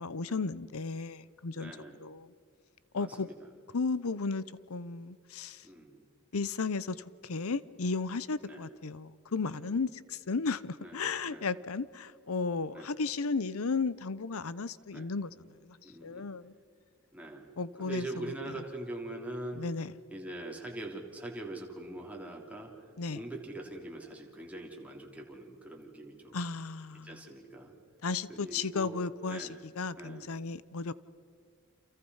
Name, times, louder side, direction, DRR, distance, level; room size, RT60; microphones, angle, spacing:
voice 1, 0.0-1.7 2.0-2.3 2.9-3.3 3.7-4.4 4.7-5.6 6.3-7.0 7.2-15.3 15.7-16.5 17.6-18.1 19.6-19.9 23.0-23.2 26.3-27.1 28.0-29.5 29.8-30.9, left 4 dB, 85° left, 0.8 m, -34 dB
voice 2, 1.5-2.0 3.0-3.5 5.6-6.0 8.4-8.7 9.6-9.8 10.8-11.0 11.2-11.5 12.7-12.9 14.9-15.1 15.8-16.3 17.1-17.5 17.8-19.6 20.1-26.4 26.9-27.8 28.3-29.0 29.3-29.6 30.0-30.3, right 1 dB, 5° right, 3.3 m, -43 dB
30.0 x 28.0 x 5.6 m
head